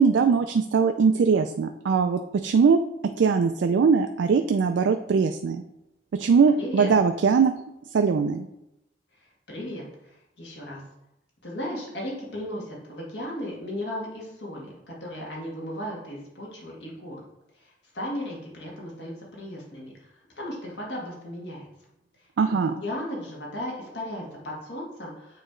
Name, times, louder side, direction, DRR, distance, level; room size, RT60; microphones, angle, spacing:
voice 1, 0.0-5.6 6.1-7.5 7.9-8.5 22.4-22.7, right 5 dB, 75° right, 7 dB, 0.3 m, -21 dB
voice 2, 6.6-6.9 9.5-9.8 10.4-10.8 11.4-17.2 17.9-19.9 20.4-21.7 22.5-25.4, left 1 dB, 65° left, -3 dB, 1.8 m, -35 dB
8.6 x 3.0 x 3.7 m, 0.86 s
head